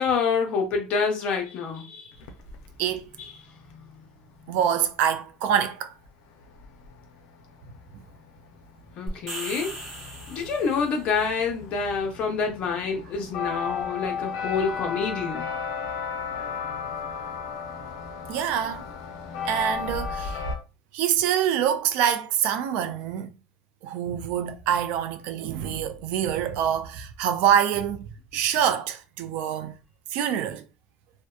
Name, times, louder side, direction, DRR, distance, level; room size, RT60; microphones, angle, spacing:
voice 1, 0.0-2.1 3.2-3.3 3.7-4.0 9.0-9.7 10.3-15.4, left 5 dB, 50° left, 0.8 m, -27 dB
sound 1, 2.1-3.0 6.0-6.1 6.3-20.6, left 5 dB, 80° left, 0.5 m, -35 dB
voice 2, 4.5-5.9 18.3-18.8 19.5-20.4 20.9-23.3 23.8-28.0 28.3-29.7 30.1-30.6, right 9 dB, 70° right, 0.3 m, -25 dB
sound 2, 9.1-11.0, right 1 dB, 20° right, 0.9 m, -37 dB
2.6 x 2.1 x 2.3 m
cardioid pair, 130°, 3 cm